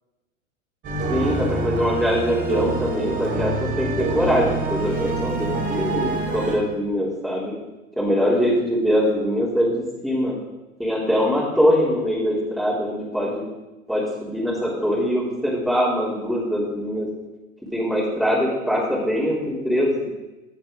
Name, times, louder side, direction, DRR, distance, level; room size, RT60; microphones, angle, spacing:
sound 1, 0.8-6.6, right 3 dB, 30° right, 3.5 m, -26 dB
voice 1, 1.1-7.5 8.0-10.3 10.8-13.4 13.9-17.1 17.7-20.1, equal, ahead, -7 dB, 3.2 m, -22 dB
15.5 x 7.7 x 3.8 m, 1.1 s
figure-of-eight pair, 95°, 41 cm